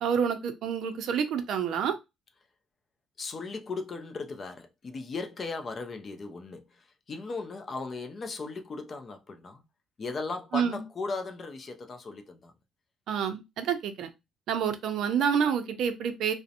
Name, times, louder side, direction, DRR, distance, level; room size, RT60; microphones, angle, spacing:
voice 1, 0.0-1.9 10.5-10.8 13.1-14.1 14.5-16.3, right 7 dB, 65° right, 0.4 m, -28 dB
voice 2, 3.2-9.6 10.0-12.5, left 3 dB, 30° left, 0.4 m, -37 dB
2.7 x 2.0 x 2.5 m
cardioid pair, 155°, 0 cm